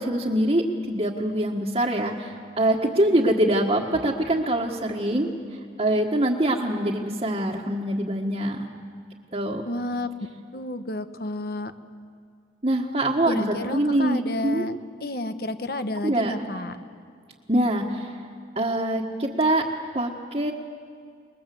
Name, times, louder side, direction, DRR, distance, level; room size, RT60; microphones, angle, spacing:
voice 1, 0.0-8.7 9.3-9.6 12.6-14.7 16.0-16.3 17.5-18.2 18.5-19.7 19.9-20.5, right 1 dB, 35° right, -3 dB, 1.6 m, -24 dB
voice 2, 9.7-10.1 10.5-11.7 13.3-14.7 15.0-16.8, left 1 dB, 60° left, 9 dB, 1.2 m, -31 dB
27.5 x 21.0 x 7.8 m, 2.1 s
head